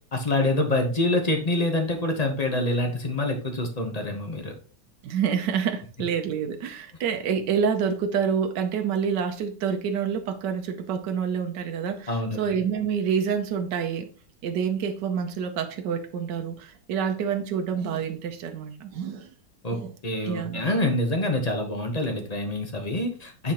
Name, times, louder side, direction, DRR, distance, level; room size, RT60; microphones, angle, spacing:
voice 1, 0.1-4.5 12.1-12.4 19.6-23.5, left 1 dB, 30° left, 3 dB, 0.9 m, -26 dB
voice 2, 5.0-14.1 14.4-19.3 19.7-19.9 20.2-20.6, right 7 dB, 85° right, 5 dB, 1.4 m, -27 dB
9.5 x 4.1 x 2.9 m, 0.40 s
omnidirectional pair, 1.8 m